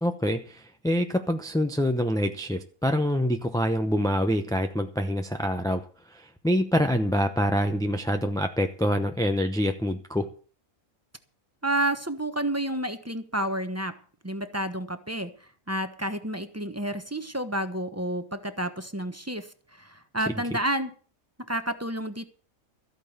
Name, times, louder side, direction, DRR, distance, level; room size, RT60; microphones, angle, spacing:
voice 1, 0.0-5.8 6.1-10.3, equal, 5° left, 6 dB, 0.5 m, -26 dB
voice 2, 11.6-14.0 14.2-15.3 15.7-20.9 21.5-22.2, right 1 dB, 10° right, 9 dB, 1.0 m, -30 dB
14.0 x 9.1 x 6.8 m, 0.40 s
omnidirectional pair, 1.5 m